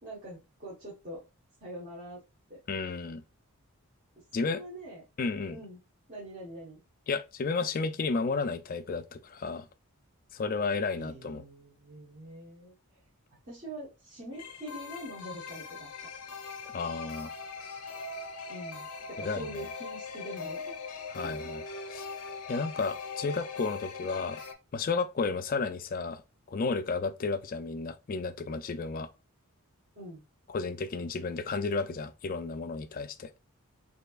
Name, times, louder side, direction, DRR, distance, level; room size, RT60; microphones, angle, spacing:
voice 1, 0.0-1.2 1.6-2.2 2.5-2.6 4.4-5.0 5.5-5.8 6.1-6.8 11.0-12.7 13.4-15.9 18.5-20.7 21.2-21.3 29.9-30.2, right 1 dB, 40° right, 1.3 m, -44 dB
voice 2, 2.7-3.2 4.3-4.6 5.2-5.6 7.1-9.6 10.3-11.4 16.7-17.3 19.2-19.5 21.1-21.6 21.9-22.1 22.5-24.4 24.7-26.2 26.5-29.1 30.5-33.3, left 4 dB, 40° left, 0.3 m, -32 dB
sound 1, 14.3-24.5, left 4 dB, 85° left, 0.6 m, -41 dB
4.4 x 2.8 x 2.4 m
head